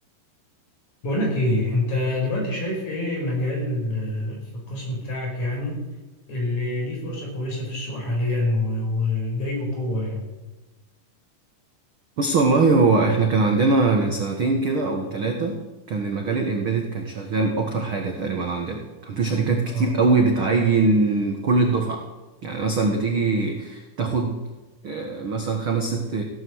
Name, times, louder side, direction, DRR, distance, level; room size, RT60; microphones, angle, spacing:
voice 1, 1.0-5.8 6.3-10.2 19.6-19.9, left 1 dB, 50° left, 0 dB, 6.1 m, -26 dB
voice 2, 12.2-15.6 15.9-22.0 22.4-24.4 24.8-26.2, right 3 dB, 55° right, 3 dB, 1.5 m, -22 dB
16.0 x 11.0 x 7.9 m, 1.2 s
omnidirectional pair, 4.4 m